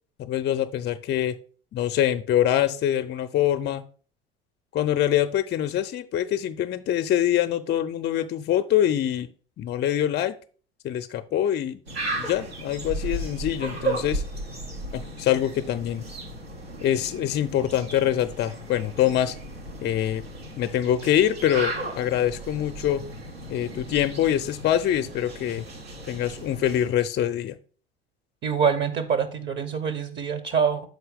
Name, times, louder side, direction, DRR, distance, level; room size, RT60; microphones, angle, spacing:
voice 1, 0.2-1.3 1.7-3.8 4.7-9.3 9.6-10.3 10.8-11.8 12.1-14.2 14.9-16.0 16.8-19.4 19.8-20.2 20.6-23.0 23.5-25.7 26.1-27.6, left 11 dB, 35° left, 9 dB, 0.5 m, -24 dB
sound 1, 11.9-26.9, right 1 dB, 90° right, 1.2 m, -35 dB
voice 2, 28.4-30.8, right 6 dB, 40° right, 11 dB, 0.8 m, -25 dB
6.4 x 4.6 x 5.0 m, 0.41 s
figure-of-eight pair, 65°, 30 cm